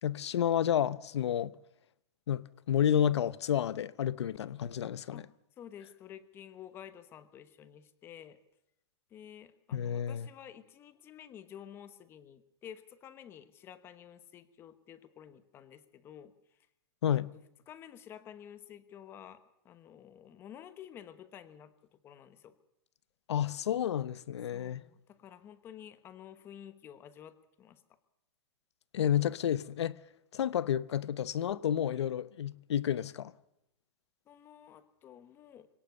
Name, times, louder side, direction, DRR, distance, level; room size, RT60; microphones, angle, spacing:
voice 1, 0.0-1.6 2.3-5.2 9.7-10.3 17.0-17.3 23.3-24.8 28.9-30.0 30.3-33.3, left 9 dB, 85° left, 1.0 m, -30 dB
voice 2, 5.6-8.4 9.1-16.6 17.1-17.2 17.7-22.6 24.5-27.8 34.3-35.7, left 9 dB, 15° left, 1.1 m, -51 dB
24.5 x 18.0 x 6.8 m
supercardioid pair, 170°, 14 cm